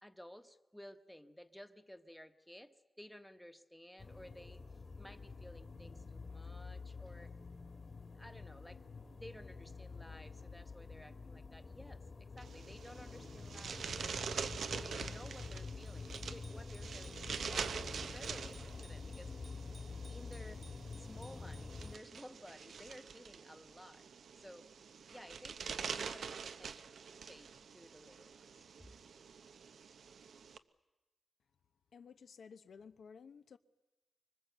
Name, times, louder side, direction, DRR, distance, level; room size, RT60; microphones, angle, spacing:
voice 1, 0.0-4.6 5.0-7.3 8.1-8.9 9.1-13.8 14.8-19.3 20.1-20.6 21.0-24.1 24.4-24.7 25.1-25.6 25.9-28.7, equal, 5° left, 9 dB, 1.1 m, -55 dB
sound 1, 4.0-22.0, left 4 dB, 45° left, 1.8 m, -48 dB
sound 2, 12.4-30.6, right 6 dB, 90° right, 0.9 m, -45 dB
Bicycle bell, 15.9-22.5, right 3 dB, 35° right, 1.4 m, -64 dB
voice 2, 31.9-33.6, left 6 dB, 80° left, 10 dB, 0.9 m, -55 dB
25.0 x 23.0 x 8.0 m, 1.1 s
wide cardioid pair, 125°, 0 cm